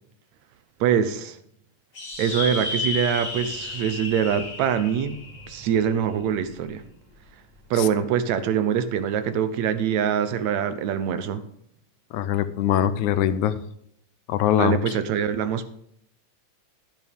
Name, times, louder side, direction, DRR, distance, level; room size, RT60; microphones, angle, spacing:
voice 1, 0.8-1.4 2.2-5.2 5.5-6.8 7.7-11.4 14.6-15.7, right 8 dB, 75° right, 11 dB, 2.1 m, -24 dB
sound 1, 1.9-6.7, left 3 dB, 40° left, 2.6 m, -33 dB
voice 2, 12.1-13.6 14.3-14.8, left 10 dB, 90° left, 13 dB, 2.2 m, -22 dB
11.0 x 11.0 x 3.5 m, 0.69 s
omnidirectional pair, 3.3 m